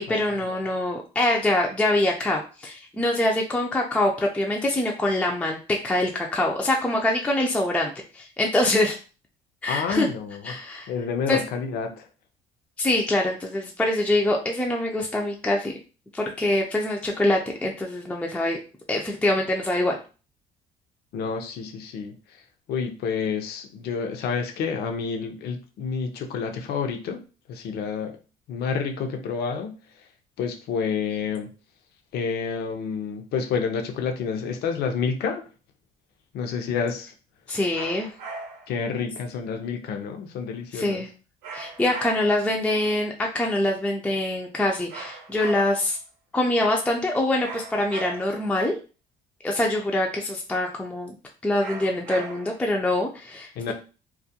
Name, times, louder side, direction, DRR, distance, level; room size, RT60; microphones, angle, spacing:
voice 1, 0.0-9.0 9.6-10.1 10.4-10.9 11.3-11.4 12.8-15.7 16.1-18.6 18.9-20.0 37.5-38.1 40.7-41.1 41.5-46.0 46.3-48.7 49.4-51.1 51.4-53.5, left 1 dB, 5° left, 0 dB, 0.3 m, -24 dB
voice 2, 9.7-10.6 10.9-12.1 21.1-22.2 22.7-27.2 27.5-28.1 28.5-29.8 30.4-31.5 32.1-35.4 36.3-37.1 38.7-41.0 53.6-53.7, left 6 dB, 70° left, 5 dB, 0.5 m, -29 dB
sound 1, 37.7-38.8 41.4-42.5 44.9-46.0 47.4-48.5 51.6-52.7, right 3 dB, 90° right, 0.6 m, -38 dB
2.3 x 2.1 x 2.7 m, 0.35 s
cardioid pair, 110°, 17 cm